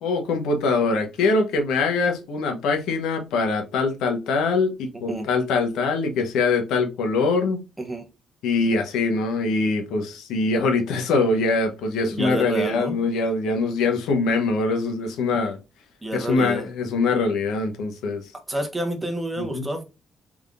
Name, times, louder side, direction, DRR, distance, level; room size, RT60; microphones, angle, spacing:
voice 1, 0.0-7.6 8.4-15.6 16.1-18.3 19.5-19.7, left 3 dB, 85° left, 0.9 m, -23 dB
voice 2, 12.1-13.0 16.0-16.6 18.5-19.8, right 1 dB, 15° right, 1.1 m, -28 dB
3.6 x 3.4 x 2.4 m
cardioid pair, 90°, 0 cm